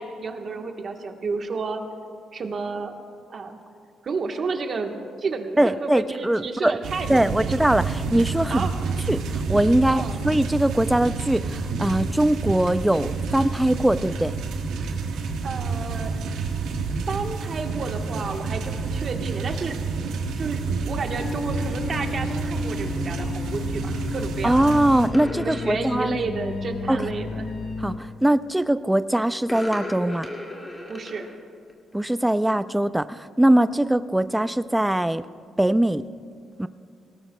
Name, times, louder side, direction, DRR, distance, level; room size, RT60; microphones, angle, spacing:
voice 1, 0.0-1.8 2.3-2.9 3.3-3.6 4.0-7.5 8.5-8.7 9.9-10.2 15.4-16.1 17.1-19.8 20.4-24.8 25.4-27.5 30.9-31.3, right 4 dB, 50° right, 4 dB, 1.2 m, -31 dB
voice 2, 5.6-6.8 7.1-8.7 9.1-14.3 24.4-26.2 26.9-27.1 27.8-30.3 31.9-35.3 35.6-36.0 36.6-36.7, right 1 dB, 5° right, 13 dB, 0.3 m, -21 dB
sound 1, 6.8-25.1, right 4 dB, 85° right, 1.3 m, -29 dB
sound 2, 21.1-28.0, left 4 dB, 50° left, 0.8 m, -33 dB
sound 3, 25.1-25.8 27.7-28.0 29.4-31.4 31.7-31.9, left 1 dB, 20° left, 2.1 m, -36 dB
18.5 x 18.0 x 2.2 m, 2.3 s
cardioid pair, 90°, 0 cm